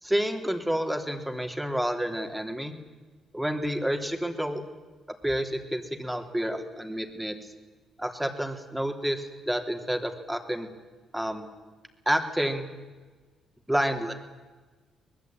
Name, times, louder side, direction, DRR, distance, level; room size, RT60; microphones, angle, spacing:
voice 1, 0.0-2.7 3.3-4.6 5.2-7.4 8.0-10.7 11.1-11.4 12.0-12.7 13.7-14.1, equal, 5° right, 5 dB, 3.4 m, -29 dB
24.5 x 20.5 x 9.0 m, 1.3 s
cardioid pair, 90°, 0 cm